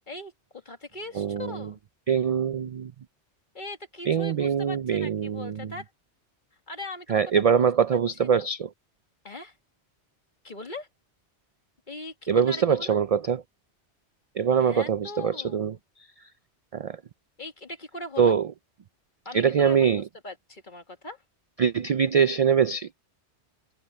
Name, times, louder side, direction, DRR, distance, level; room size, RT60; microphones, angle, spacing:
voice 1, 0.1-1.8 3.5-5.9 6.7-7.5 7.9-8.0 8.3-8.4 9.2-9.5 10.4-10.9 11.9-13.0 14.6-15.8 17.4-18.4 19.3-21.2, left 2 dB, 45° left, 2.2 m, -40 dB
voice 2, 1.1-1.7 2.1-2.9 4.1-5.7 7.1-8.7 12.3-13.4 14.4-16.1 16.7-17.0 18.2-18.5 19.3-20.0 21.6-22.9, right 7 dB, 70° right, 0.3 m, -23 dB
omnidirectional pair, 1.2 m